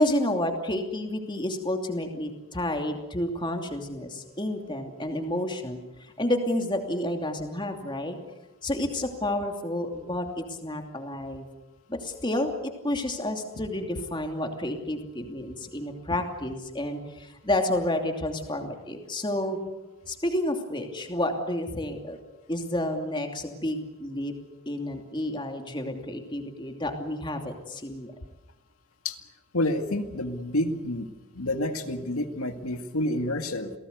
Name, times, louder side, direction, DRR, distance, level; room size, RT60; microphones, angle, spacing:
voice 1, 0.0-8.2 8.6-11.5 11.9-12.5 12.8-19.6 20.1-22.2 22.5-24.3 24.7-28.1, left 1 dB, 20° left, 4 dB, 2.8 m, -30 dB
voice 2, 29.5-31.1 31.3-33.7, left 1 dB, 85° left, 6 dB, 2.1 m, -28 dB
28.5 x 18.5 x 8.2 m, 1.1 s
head